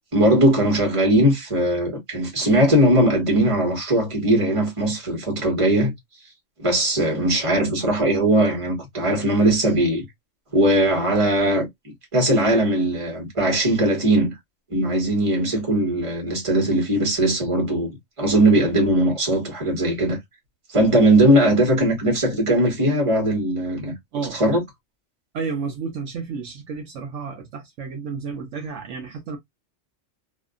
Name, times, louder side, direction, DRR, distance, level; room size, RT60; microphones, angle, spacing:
voice 1, 0.1-5.9 6.6-10.0 10.5-11.7 12.1-14.4 14.7-20.2 20.7-23.9 24.3-24.6, right 1 dB, 25° right, 1.2 m, -19 dB
voice 2, 25.3-29.4, right 5 dB, 70° right, 0.9 m, -31 dB
2.8 x 2.4 x 2.3 m
omnidirectional pair, 1.4 m